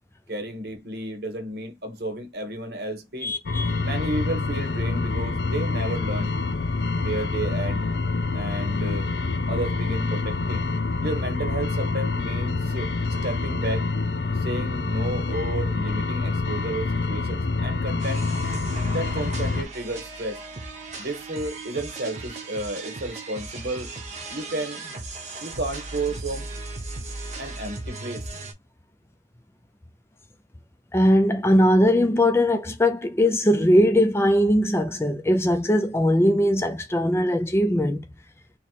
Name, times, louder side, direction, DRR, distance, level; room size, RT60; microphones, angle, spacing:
voice 1, 0.3-3.3 3.8-6.4 7.0-7.9 8.3-9.1 9.5-10.6 11.0-13.9 14.3-18.2 18.9-20.4 21.0-23.9 24.3-24.8 25.4-26.5 27.4-28.3, right 2 dB, 65° right, 1.2 m, -32 dB
voice 2, 3.2-3.8 30.9-38.0, equal, 15° left, 0.4 m, -20 dB
sound 1, 3.5-19.6, left 3 dB, 70° left, 0.6 m, -26 dB
sound 2, 18.0-28.5, right 3 dB, 40° right, 0.9 m, -37 dB
3.0 x 2.9 x 4.5 m
head